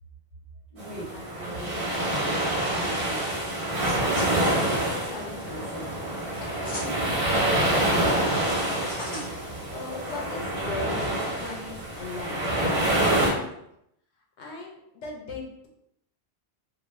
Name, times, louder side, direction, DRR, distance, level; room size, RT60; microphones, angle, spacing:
voice 1, 0.7-1.9 2.7-3.3 9.0-9.3 10.2-10.4, right 1 dB, 35° right, -6 dB, 0.8 m, -40 dB
sound 1, 0.8-13.3, right 1 dB, 60° right, 1.0 m, -26 dB
voice 2, 1.7-2.3 4.5-5.8 6.4-8.3 9.7-12.6 14.4-15.7, left 3 dB, 90° left, 0 dB, 1.0 m, -39 dB
sound 2, 3.4-10.2, left 1 dB, 30° left, 1.1 m, -44 dB
2.6 x 2.6 x 3.0 m, 0.78 s
omnidirectional pair, 1.1 m